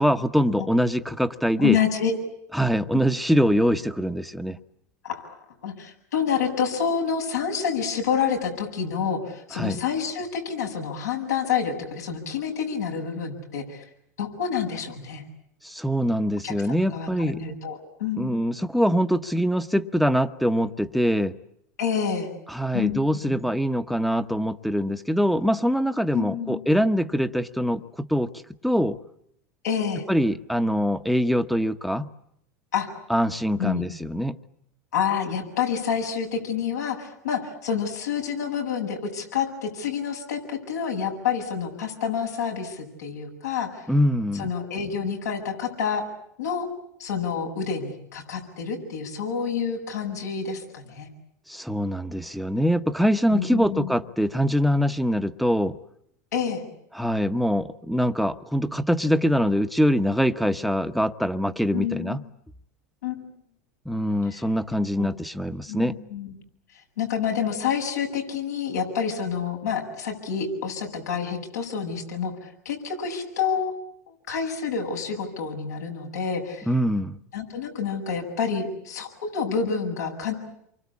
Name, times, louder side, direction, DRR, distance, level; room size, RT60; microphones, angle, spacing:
voice 1, 0.0-1.8 2.5-4.6 9.5-9.8 15.6-17.4 18.2-21.3 22.5-28.3 28.6-29.0 30.1-32.1 33.1-34.4 43.9-44.5 51.5-55.8 56.9-62.2 63.8-65.9 76.7-77.2, equal, ahead, 1.2 m, -23 dB
voice 2, 1.6-2.1 5.0-5.3 5.6-13.8 14.2-15.2 16.4-18.3 21.8-22.3 22.7-23.4 26.1-26.6 29.6-30.1 32.7-32.9 33.6-33.8 34.9-43.8 44.4-46.0 46.4-46.7 47.0-51.1 53.3-53.9 56.3-56.6 61.7-62.2 63.0-63.2 64.3-64.4 64.9-65.1 65.7-66.3 67.0-76.7 77.3-80.3, left 7 dB, 85° left, 7.7 m, -28 dB
28.5 x 24.0 x 8.6 m
hypercardioid pair, 95°, 9 cm